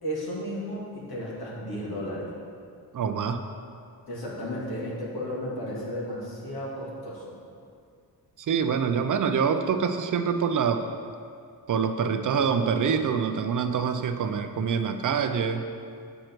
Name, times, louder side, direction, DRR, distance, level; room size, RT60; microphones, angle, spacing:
voice 1, 0.0-2.3 4.1-7.4, equal, 75° left, -5 dB, 2.1 m, -34 dB
voice 2, 2.9-3.4 8.4-10.8 11.7-15.6, right 6 dB, 55° right, 7 dB, 0.6 m, -25 dB
7.9 x 6.5 x 4.5 m, 2.3 s
wide cardioid pair, 125°, 38 cm